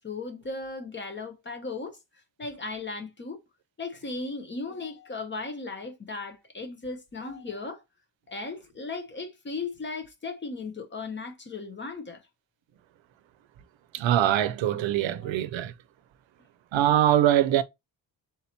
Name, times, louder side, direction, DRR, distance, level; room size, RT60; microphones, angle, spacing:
voice 1, 0.0-2.0 2.4-3.4 3.8-7.8 8.3-12.2 15.0-15.3, left 3 dB, 25° left, 0.7 m, -36 dB
voice 2, 13.9-15.7 16.7-17.6, right 11 dB, 80° right, 0.6 m, -23 dB
3.9 x 2.9 x 4.1 m
wide cardioid pair, 170°, 46 cm